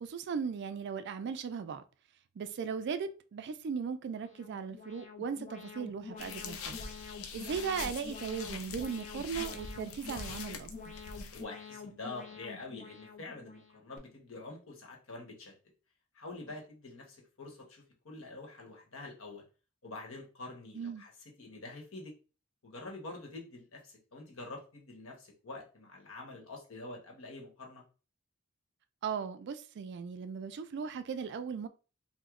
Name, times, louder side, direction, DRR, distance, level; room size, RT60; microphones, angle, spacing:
voice 1, 0.0-1.8 2.4-6.8 7.3-10.9 20.7-21.0 29.0-31.7, right 6 dB, 55° right, 0.3 m, -37 dB
Alarm, 4.1-14.0, left 5 dB, 35° left, 0.5 m, -48 dB
sound 1, 6.2-11.4, left 5 dB, 85° left, 0.5 m, -43 dB
voice 2, 11.3-15.5 16.1-19.4 19.8-21.1 21.4-22.1 22.6-27.8, left 2 dB, 70° left, 1.0 m, -46 dB
3.0 x 2.1 x 3.5 m
head